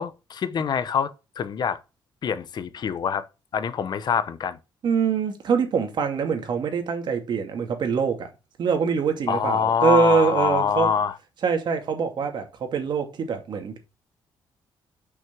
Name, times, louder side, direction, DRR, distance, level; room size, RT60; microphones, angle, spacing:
voice 1, 0.0-1.8 2.2-3.3 3.5-4.6 9.3-11.2, left 7 dB, 55° left, 0.9 m, -25 dB
voice 2, 4.8-8.3 8.6-10.9 11.4-13.8, right 6 dB, 55° right, 2.4 m, -24 dB
6.3 x 6.0 x 7.0 m
cardioid pair, 105°, 9 cm